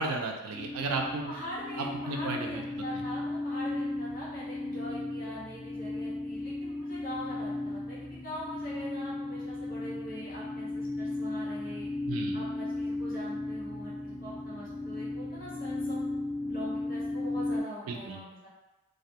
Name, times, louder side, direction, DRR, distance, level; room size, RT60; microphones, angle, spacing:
voice 1, 0.0-1.3 1.8-2.6 12.1-12.4 17.9-18.2, right 3 dB, 85° right, 3 dB, 0.4 m, -33 dB
sound 1, 0.5-17.6, left 2 dB, 20° left, 0.5 m, -35 dB
voice 2, 1.3-11.9 12.3-16.0 16.4-18.5, equal, 40° left, -8 dB, 0.8 m, -43 dB
2.3 x 2.1 x 2.8 m, 1.1 s
head